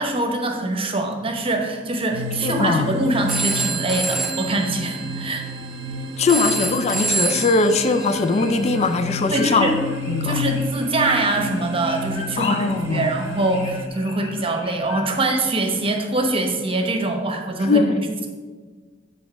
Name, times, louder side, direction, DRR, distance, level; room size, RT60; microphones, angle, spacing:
voice 1, 0.0-5.5 9.3-9.8 10.2-18.3, right 2 dB, 30° right, 3 dB, 0.9 m, -23 dB
sound 1, 2.1-13.9, left 2 dB, 70° right, 0.6 m, -32 dB
voice 2, 2.4-2.9 6.2-9.7 10.1-10.4 12.4-13.1 17.6-18.0, left 4 dB, 35° left, 9 dB, 0.4 m, -20 dB
Telephone, 3.1-9.0, right 4 dB, ahead, 0.8 m, -28 dB
sound 2, 7.6-15.1, left 4 dB, 70° left, 0.9 m, -40 dB
7.0 x 4.1 x 5.8 m, 1.5 s
head